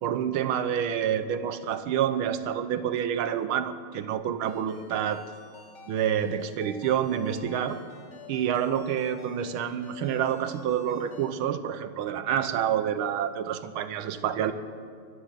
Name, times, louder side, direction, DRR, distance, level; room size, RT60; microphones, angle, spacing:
voice 1, 0.0-5.2 5.9-7.8 8.3-14.5, right 9 dB, 75° right, 10 dB, 1.6 m, -28 dB
Ringtone, 4.5-11.3, left 5 dB, 75° left, 2.2 m, -50 dB
23.5 x 7.9 x 7.5 m, 2.2 s
omnidirectional pair, 2.4 m